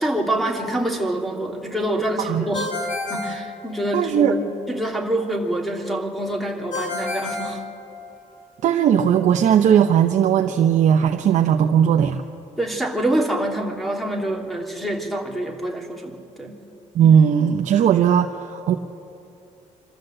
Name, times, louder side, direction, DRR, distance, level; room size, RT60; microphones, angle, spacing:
voice 1, 0.0-2.7 3.1-4.4 4.7-7.6 12.6-16.6, right 1 dB, ahead, 1 dB, 3.0 m, -26 dB
Ringtone, 2.5-4.2 6.7-8.4, left 3 dB, 75° left, 3.9 m, -30 dB
voice 2, 3.9-4.3 8.6-12.2 16.9-18.7, right 8 dB, 65° right, 5 dB, 0.9 m, -17 dB
26.0 x 13.5 x 7.9 m, 2.7 s
cardioid pair, 95°, 13 cm